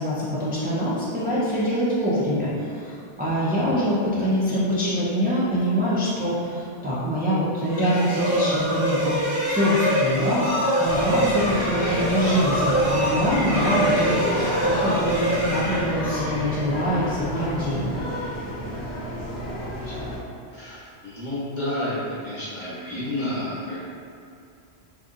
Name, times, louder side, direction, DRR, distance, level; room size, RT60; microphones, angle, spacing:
voice 1, 0.0-14.2 14.7-17.9, equal, 15° right, -10 dB, 0.3 m, -24 dB
sound 1, 7.7-16.4, equal, 50° right, 1.3 m, -25 dB
sound 2, 10.8-20.2, equal, 80° left, 1.0 m, -30 dB
voice 2, 20.5-21.9 22.2-23.8, left 1 dB, 45° left, -10 dB, 1.1 m, -30 dB
3.8 x 2.8 x 2.5 m, 2.4 s
omnidirectional pair, 1.2 m